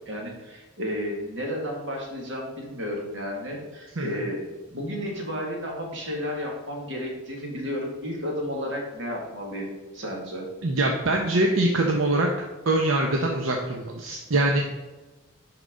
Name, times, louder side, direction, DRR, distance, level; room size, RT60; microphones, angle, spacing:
voice 1, 0.1-4.4 4.7-10.5, equal, 65° right, -1 dB, 2.1 m, -32 dB
voice 2, 10.6-12.3 12.7-14.6, right 2 dB, 85° right, 1 dB, 0.9 m, -23 dB
10.5 x 4.8 x 3.8 m, 1.1 s
head